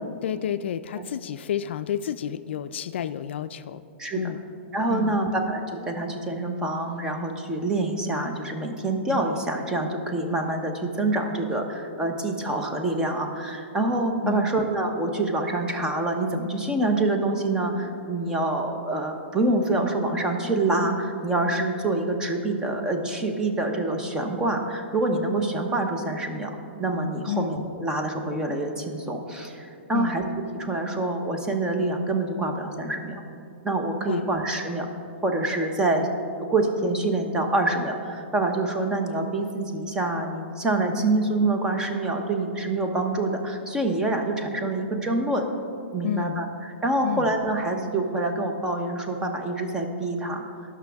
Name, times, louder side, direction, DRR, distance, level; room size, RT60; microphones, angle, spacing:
voice 1, 0.2-3.8 4.2-4.4 4.9-5.2 14.2-14.5 27.3-27.5 29.9-30.2 34.0-34.3 46.0-46.4 47.0-47.3, left 10 dB, 65° left, 12 dB, 0.3 m, -30 dB
voice 2, 4.0-4.3 4.7-30.2 30.5-33.2 33.6-34.9 35.2-36.1 36.5-45.5 45.9-46.5 46.8-50.4, right 2 dB, 10° right, 3 dB, 0.8 m, -26 dB
17.0 x 5.9 x 3.5 m, 2.6 s
hypercardioid pair, 150°, 7 cm